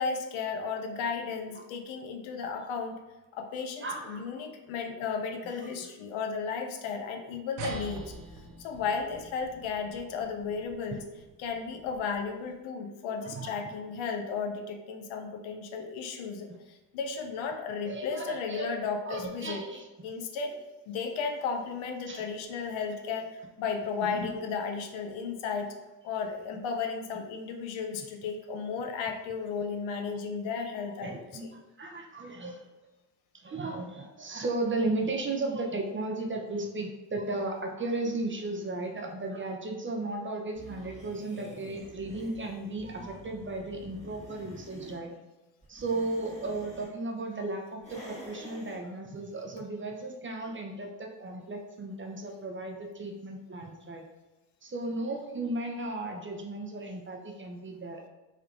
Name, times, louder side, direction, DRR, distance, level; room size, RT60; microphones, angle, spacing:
voice 1, 0.0-3.0 3.3-8.1 8.6-11.0 11.4-16.5 16.9-19.6 20.0-20.6 20.9-25.7 26.0-31.5, left 5 dB, 75° left, 4 dB, 0.6 m, -34 dB
voice 2, 3.8-4.2 5.4-5.7 7.8-7.9 10.9-11.0 13.2-13.6 17.8-18.7 19.0-19.9 22.1-22.3 24.0-24.4 27.9-28.0 31.0-32.7 33.3-45.1 45.7-54.0 54.6-58.1, right 2 dB, 25° right, 2 dB, 0.5 m, -35 dB
sound 1, 7.6-12.5, right 2 dB, 85° right, 0.6 m, -44 dB
sound 2, 40.5-45.0 45.6-46.9 47.8-48.8, equal, 15° left, 1.3 m, -48 dB
3.3 x 2.9 x 2.4 m, 1.1 s
hypercardioid pair, 45°, 48 cm